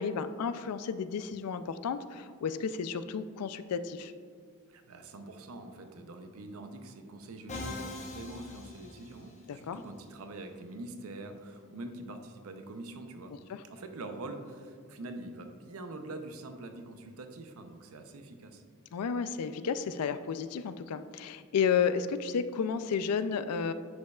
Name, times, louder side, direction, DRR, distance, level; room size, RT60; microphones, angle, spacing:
voice 1, 0.0-4.1 9.5-9.8 18.9-23.7, left 6 dB, 85° left, 12 dB, 0.4 m, -32 dB
voice 2, 4.7-13.3 13.6-18.6, right 2 dB, 70° right, 6 dB, 0.6 m, -44 dB
Musical instrument, 7.5-9.6, left 2 dB, 30° left, 0.8 m, -42 dB
10.0 x 5.3 x 2.3 m, 2.1 s
head